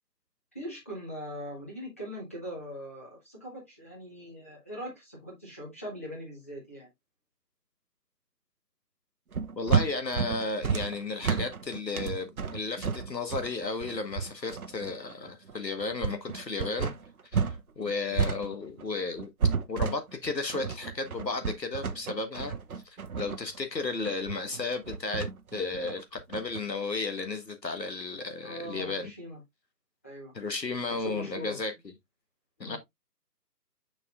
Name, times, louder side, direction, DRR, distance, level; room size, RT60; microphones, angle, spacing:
voice 1, 0.5-6.9 28.4-29.4 30.0-30.3 30.8-31.6 32.6-32.8, equal, 10° left, 0.9 m, -41 dB
sound 1, 9.3-17.6 17.9-26.6, right 6 dB, 60° right, 0.8 m, -31 dB
voice 2, 9.6-16.9 17.3-19.3 19.7-22.5 22.8-29.1 30.3-31.7 32.6-32.8, left 3 dB, 85° left, 1.5 m, -34 dB
6.5 x 6.1 x 2.4 m
figure-of-eight pair, 150°, 49 cm